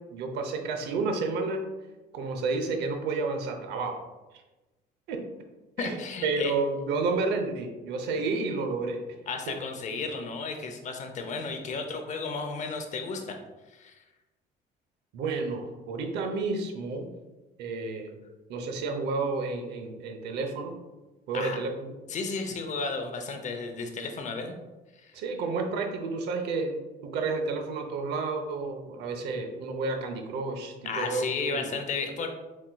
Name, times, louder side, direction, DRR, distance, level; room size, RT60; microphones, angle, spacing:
voice 1, 0.0-1.6 2.1-4.0 5.1-5.2 5.8-9.0 15.1-17.1 17.6-18.2 18.5-20.7 21.3-22.0 25.1-26.7 27.0-31.7, right 3 dB, 80° right, 4 dB, 0.7 m, -31 dB
voice 2, 5.8-6.5 9.3-13.4 13.7-14.0 21.3-21.6 22.1-24.6 25.0-25.1 30.8-32.3, left 4 dB, 45° left, 5 dB, 0.7 m, -33 dB
4.3 x 4.2 x 2.3 m, 1.1 s
cardioid pair, 110°, 17 cm